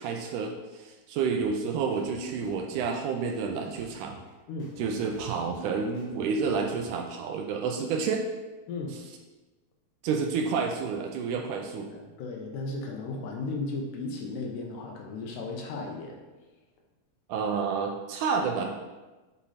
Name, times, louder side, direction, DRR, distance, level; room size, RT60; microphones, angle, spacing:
voice 1, 0.0-4.2 4.8-8.3 10.0-11.9 17.3-18.7, right 5 dB, 80° right, 2 dB, 1.9 m, -29 dB
sound 1, 1.4-1.5 1.9-2.8 3.2-4.3 4.6-6.9, left 2 dB, 60° left, 2.5 m, -51 dB
voice 2, 8.7-9.0 11.9-16.2, left 3 dB, 75° left, 1 dB, 2.3 m, -35 dB
8.3 x 3.8 x 4.1 m, 1.2 s
omnidirectional pair, 4.0 m